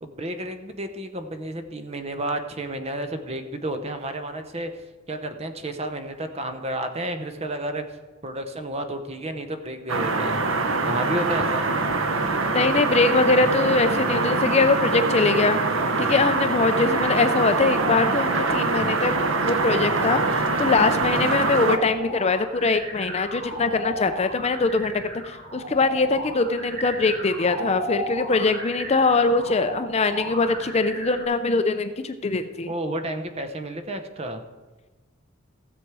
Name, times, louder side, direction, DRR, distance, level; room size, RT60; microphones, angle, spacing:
voice 1, 0.0-4.7 5.1-7.8 8.2-10.4 10.8-11.7 32.7-34.4, right 1 dB, 30° right, 8 dB, 0.8 m, -31 dB
sound 1, 9.9-21.8, right 3 dB, 75° right, 0.9 m, -24 dB
voice 2, 12.5-15.6 16.0-19.2 19.4-32.7, left 3 dB, 30° left, 10 dB, 0.5 m, -22 dB
sound 2, 16.9-31.2, equal, 50° right, 3.7 m, -35 dB
16.0 x 7.3 x 4.8 m, 1.3 s
head